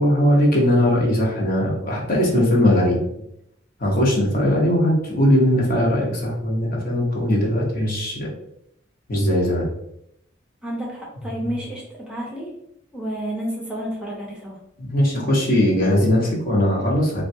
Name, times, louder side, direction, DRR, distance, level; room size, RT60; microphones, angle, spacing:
voice 1, 0.0-3.0 3.8-8.3 9.1-9.7 14.8-17.2, left 1 dB, 50° left, -3 dB, 0.9 m, -19 dB
voice 2, 10.6-12.5 12.9-14.6, equal, 5° right, -3 dB, 0.6 m, -30 dB
3.5 x 2.2 x 2.6 m, 0.77 s
head